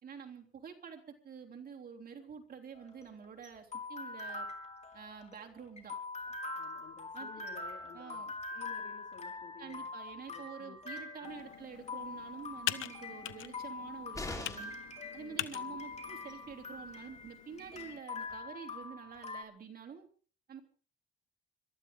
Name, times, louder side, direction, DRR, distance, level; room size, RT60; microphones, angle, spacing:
voice 1, 0.0-4.5 4.9-6.0 7.1-7.4 7.9-8.3 9.6-14.8 15.1-20.1 20.5-20.6, right 7 dB, 50° right, 3 dB, 3.3 m, -48 dB
sound 1, 2.8-19.4, left 3 dB, 35° left, 4.0 m, -44 dB
voice 2, 6.4-8.2 8.5-9.9 10.3-11.5 15.1-15.8, left 7 dB, 65° left, -1 dB, 3.2 m, -55 dB
Computer keyboard, 11.2-18.0, left 14 dB, 85° left, 1.0 m, -44 dB
sound 2, 14.1-14.9 16.8-16.9 17.2-17.3, left 2 dB, 15° left, 4.0 m, -41 dB
26.0 x 13.0 x 3.8 m, 0.41 s
cardioid pair, 90°, 20 cm